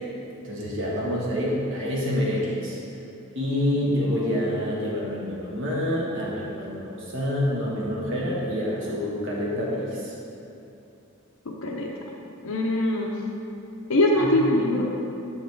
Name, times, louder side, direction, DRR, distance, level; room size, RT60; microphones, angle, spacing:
voice 1, 0.4-2.8 3.3-10.1, left 1 dB, 60° right, -5 dB, 1.3 m, -27 dB
voice 2, 3.8-4.3 11.6-11.9 12.4-13.1 13.9-14.9, left 1 dB, 70° left, -2 dB, 0.6 m, -23 dB
6.9 x 4.0 x 4.6 m, 2.7 s
head